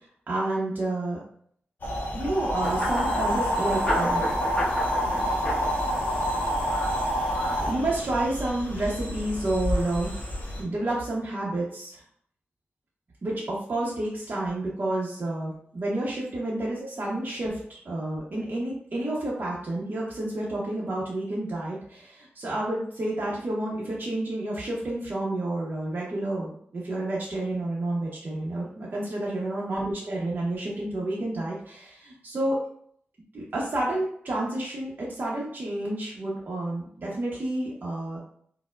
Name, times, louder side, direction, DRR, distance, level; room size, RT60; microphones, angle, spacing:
voice 1, 0.3-1.2 2.1-4.3 7.7-10.2 10.6-12.0 13.2-32.6 33.3-38.2, right 1 dB, 50° right, -5 dB, 0.6 m, -30 dB
sound 1, 1.8-10.6, equal, 50° left, 0.9 m, -28 dB
sound 2, 2.6-7.7, left 1 dB, 20° left, 0.9 m, -33 dB
4.3 x 2.0 x 2.2 m, 0.64 s
wide cardioid pair, 135°, 4 cm